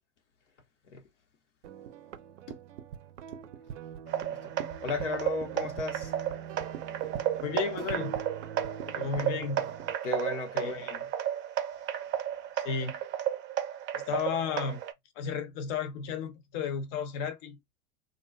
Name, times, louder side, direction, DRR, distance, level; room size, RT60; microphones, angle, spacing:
sound 1, 1.6-9.9, right 8 dB, 85° right, 0.5 m, -43 dB
sound 2, 4.1-14.9, right 10 dB, 30° right, 0.5 m, -33 dB
voice 1, 4.8-6.1 10.0-11.0, left 2 dB, 80° left, 0.9 m, -35 dB
voice 2, 7.4-8.2 8.9-9.7 10.5-10.9 12.6-13.0 13.9-14.8 15.2-17.6, left 6 dB, 50° left, 0.8 m, -33 dB
2.5 x 2.1 x 2.3 m
hypercardioid pair, 90°, 35 cm